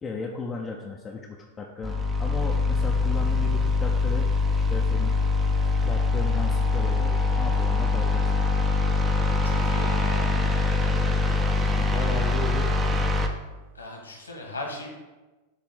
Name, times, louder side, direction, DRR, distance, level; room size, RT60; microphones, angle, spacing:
voice 1, 0.0-5.2 5.8-8.5 11.8-12.7, left 3 dB, 20° left, 0 dB, 0.7 m, -36 dB
sound 1, 1.8-13.3, left 3 dB, 15° right, 0.8 m, -23 dB
voice 2, 9.3-10.3 11.9-12.1 13.7-14.9, left 2 dB, 80° left, 0 dB, 1.7 m, -38 dB
7.6 x 3.5 x 5.9 m, 1.2 s
figure-of-eight pair, 90°, 0 cm